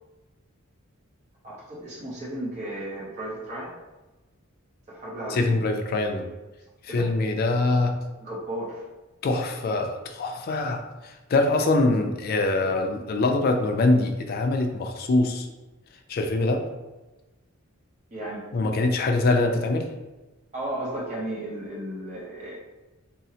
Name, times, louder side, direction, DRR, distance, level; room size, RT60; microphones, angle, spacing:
voice 1, 1.4-3.7 4.9-5.6 6.9-7.1 8.2-8.8 18.1-18.4 20.5-22.6, right 1 dB, 30° right, -6 dB, 0.6 m, -34 dB
voice 2, 5.3-6.2 6.8-7.9 9.2-15.5 16.1-16.6 18.5-19.9, left 2 dB, 45° left, 4 dB, 0.3 m, -24 dB
3.7 x 2.0 x 2.7 m, 1.1 s
head